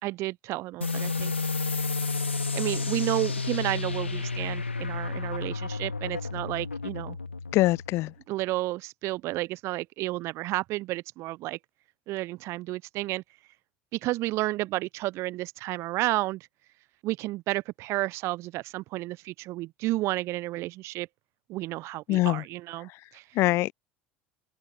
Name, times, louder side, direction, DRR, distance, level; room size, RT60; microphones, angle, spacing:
voice 1, 0.0-1.3 2.5-7.2 8.3-11.6 12.1-13.2 13.9-16.5 17.0-21.1 21.5-23.2, right 18 dB, 50° right, 0.9 m, -31 dB
sound 1, 0.8-8.1, left 4 dB, 85° left, 2.3 m, -31 dB
voice 2, 7.5-8.1 22.1-22.4 23.4-23.7, left 18 dB, 45° left, 0.7 m, -23 dB
open air
figure-of-eight pair, 70°, 6 cm